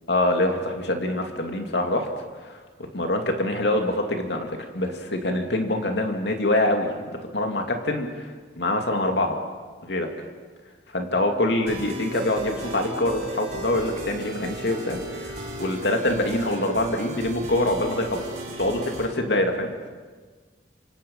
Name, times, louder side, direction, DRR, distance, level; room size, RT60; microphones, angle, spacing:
voice 1, 0.1-2.6 2.9-6.9 7.3-9.4 9.8-10.1 10.9-18.2 18.6-19.7, left 1 dB, 65° left, 3 dB, 2.7 m, -25 dB
sound 1, 11.7-19.1, right 1 dB, 40° right, 5.6 m, -36 dB
26.5 x 26.0 x 5.6 m, 1.4 s
head